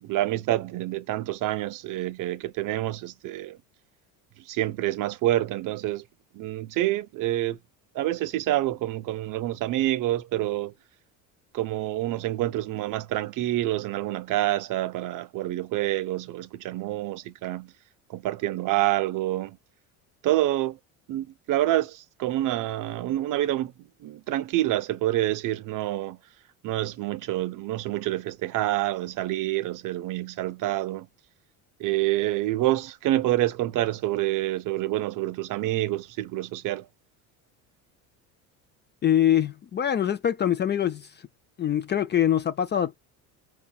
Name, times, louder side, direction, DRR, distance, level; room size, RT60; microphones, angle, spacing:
voice 1, 0.0-3.6 4.4-6.0 6.3-7.6 7.9-10.7 11.5-17.7 18.1-19.6 20.2-20.8 21.1-26.2 26.6-31.1 31.8-36.9, right 15 dB, 50° right, 0.5 m, -27 dB
voice 2, 39.0-41.0 41.6-43.0, left 10 dB, 30° left, 0.4 m, -23 dB
4.8 x 2.2 x 2.2 m
supercardioid pair, 90°, 41 cm